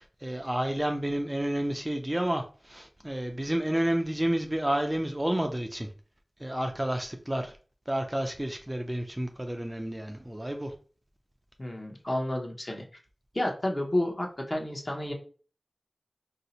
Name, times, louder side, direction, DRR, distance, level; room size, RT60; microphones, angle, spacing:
voice 1, 0.0-5.9 6.4-7.5 7.9-10.7, right 1 dB, 20° right, 4 dB, 0.4 m, -30 dB
voice 2, 11.6-12.8 13.3-15.1, left 1 dB, 35° left, 1 dB, 0.8 m, -30 dB
2.7 x 2.0 x 4.0 m, 0.39 s
wide cardioid pair, 40°, 0 cm